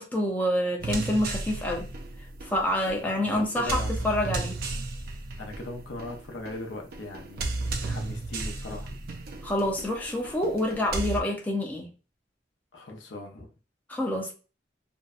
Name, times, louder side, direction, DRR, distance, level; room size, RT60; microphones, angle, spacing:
voice 1, 0.0-1.9 2.4-4.6 9.4-11.9 13.9-14.3, left 1 dB, 10° left, 0.5 m, -27 dB
sound 1, 0.8-11.2, right 3 dB, 55° right, 0.4 m, -34 dB
voice 2, 3.0-4.0 5.4-9.0 12.7-13.5, left 2 dB, 75° left, 0.6 m, -39 dB
2.6 x 2.1 x 2.3 m
head